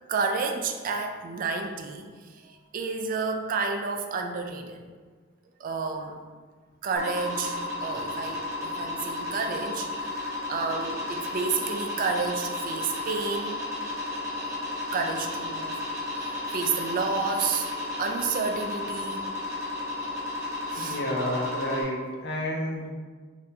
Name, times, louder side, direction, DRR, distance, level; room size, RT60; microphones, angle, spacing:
voice 1, 0.1-2.1 2.3-4.8 5.6-6.2 6.8-13.6 14.9-15.7 16.1-17.7 18.0-19.2 20.7-21.0, right 4 dB, 45° right, 4 dB, 0.3 m, -30 dB
sound 1, 7.0-21.8, left 2 dB, 15° right, 0.9 m, -33 dB
voice 2, 20.8-22.9, left 1 dB, 60° left, -1 dB, 0.6 m, -30 dB
4.0 x 2.6 x 2.6 m, 1.5 s
head